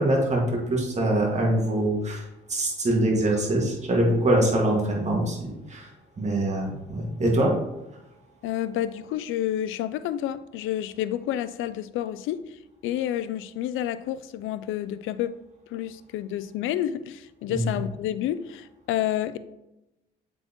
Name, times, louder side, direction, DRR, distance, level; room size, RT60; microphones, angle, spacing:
voice 1, 0.0-2.2 2.5-5.9 6.2-7.5 17.5-17.8, right 1 dB, 35° right, 1.8 m, -24 dB
voice 2, 8.4-12.4 12.8-15.4 15.7-19.4, left 11 dB, 85° left, 0.4 m, -29 dB
7.8 x 4.4 x 3.0 m
cardioid pair, 90°, 20 cm